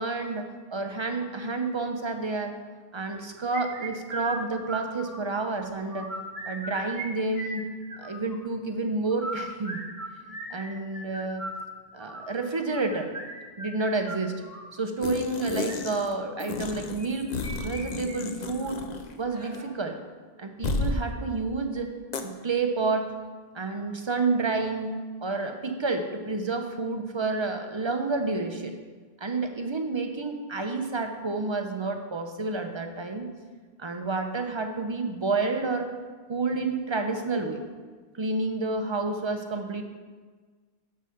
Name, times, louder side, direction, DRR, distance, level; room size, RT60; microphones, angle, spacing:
voice 1, 0.0-2.5 2.9-6.1 6.5-7.6 8.0-9.8 10.5-11.5 11.9-13.1 13.6-14.4 14.7-18.8 19.2-20.0 20.4-21.9 22.2-23.1 23.5-24.9 25.2-28.8 29.2-33.3 33.8-35.9 36.3-37.6 38.2-39.8, right 3 dB, 35° right, 5 dB, 0.6 m, -29 dB
sound 1, 3.5-5.4 5.8-7.1 7.3-8.4 9.0-14.7 15.4-15.7 17.0-17.8 18.1-18.2 18.6-18.7 19.3-19.7, right 2 dB, 15° right, 1.3 m, -38 dB
sound 2, 15.0-16.1 16.4-19.2 19.4-19.6 20.6-21.0 22.1-22.2, left 3 dB, 50° left, 0.6 m, -32 dB
7.5 x 4.8 x 5.6 m, 1.4 s
omnidirectional pair, 1.0 m